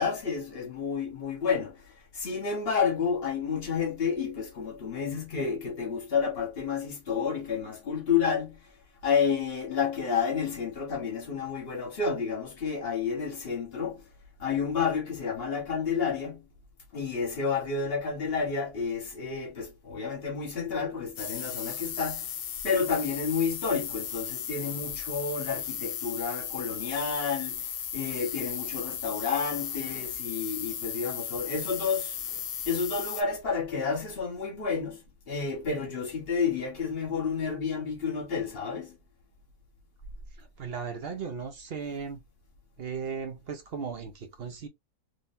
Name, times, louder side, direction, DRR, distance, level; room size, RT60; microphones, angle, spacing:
voice 1, 0.0-1.8 2.1-8.6 9.0-14.1 14.4-16.5 16.9-22.3 22.6-32.2 32.7-35.0 35.3-39.0, left 5 dB, 40° left, 1.2 m, -30 dB
sound 1, 21.2-33.2, left 9 dB, 90° left, 0.5 m, -36 dB
voice 2, 40.4-42.2 42.8-44.7, right 6 dB, 55° right, 0.7 m, -36 dB
3.9 x 3.0 x 2.6 m
omnidirectional pair, 1.7 m